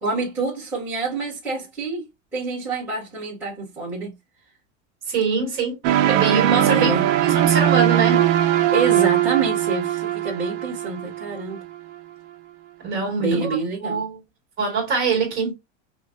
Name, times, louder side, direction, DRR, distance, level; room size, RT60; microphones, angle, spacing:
voice 1, 0.0-4.1 6.6-7.0 8.7-11.6 13.2-14.0, right 3 dB, 5° right, 1.7 m, -27 dB
voice 2, 5.1-5.8 6.1-8.2 12.8-13.6 13.8-14.2 14.6-15.5, right 5 dB, 30° right, 2.3 m, -23 dB
sound 1, 5.8-11.8, right 12 dB, 65° right, 0.8 m, -20 dB
5.7 x 2.5 x 2.6 m
supercardioid pair, 170°, 40 cm